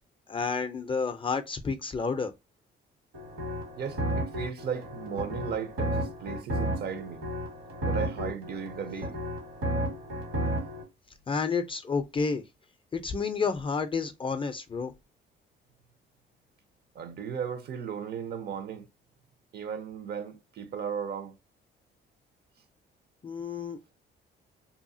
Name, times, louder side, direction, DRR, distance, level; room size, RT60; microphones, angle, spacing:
voice 1, 0.3-2.3 11.3-12.4 12.9-14.9 23.2-23.8, left 5 dB, 25° left, 0.4 m, -30 dB
sound 1, 3.1-10.8, right 1 dB, 85° right, 1.6 m, -33 dB
voice 2, 3.8-7.2 7.8-9.1 17.0-18.9 19.5-21.3, right 7 dB, 55° right, 0.5 m, -36 dB
2.7 x 2.3 x 2.6 m
cardioid pair, 90°, 20 cm